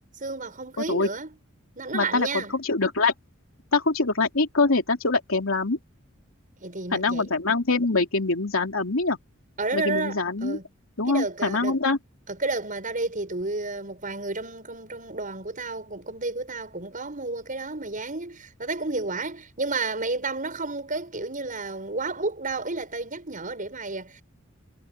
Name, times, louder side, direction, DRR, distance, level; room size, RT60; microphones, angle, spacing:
voice 1, 0.2-1.3 1.8-2.5 6.6-7.3 9.6-10.6 11.1-11.8 12.3-24.2, right 3 dB, 40° right, 7.6 m, -31 dB
voice 2, 0.8-1.1 1.9-3.1 3.7-5.8 6.9-9.2 9.7-10.6 11.0-12.0, left 3 dB, 85° left, 2.9 m, -24 dB
head